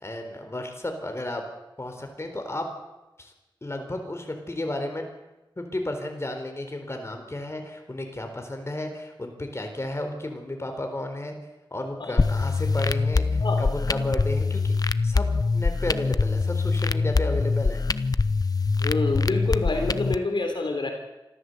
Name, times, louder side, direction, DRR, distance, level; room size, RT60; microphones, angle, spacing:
voice 1, 0.0-1.4 1.8-2.7 3.2-3.3 3.6-5.1 5.6-11.4 11.7-14.7 15.0-17.8, left 1 dB, 30° left, 4 dB, 4.1 m, -33 dB
sound 1, 12.2-20.2, left 4 dB, 45° left, 0.7 m, -24 dB
voice 2, 18.8-20.9, left 3 dB, 65° left, 3 dB, 3.6 m, -27 dB
25.5 x 14.0 x 8.0 m, 1.0 s
wide cardioid pair, 75°, 9 cm